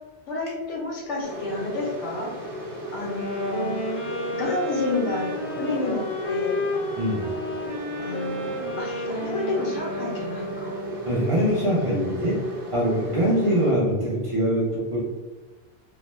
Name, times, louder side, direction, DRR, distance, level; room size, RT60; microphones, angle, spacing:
voice 1, 0.3-2.3 2.9-3.8 4.3-6.6 8.0-10.8, left 2 dB, 85° left, -3 dB, 1.2 m, -30 dB
sound 1, 1.2-13.7, equal, 20° right, 0.9 m, -36 dB
sound 2, 3.0-11.2, left 1 dB, 65° left, 1.3 m, -31 dB
voice 2, 11.1-12.4 12.7-15.0, equal, 40° right, -7 dB, 0.5 m, -23 dB
2.7 x 2.1 x 3.1 m, 1.3 s
omnidirectional pair, 1.2 m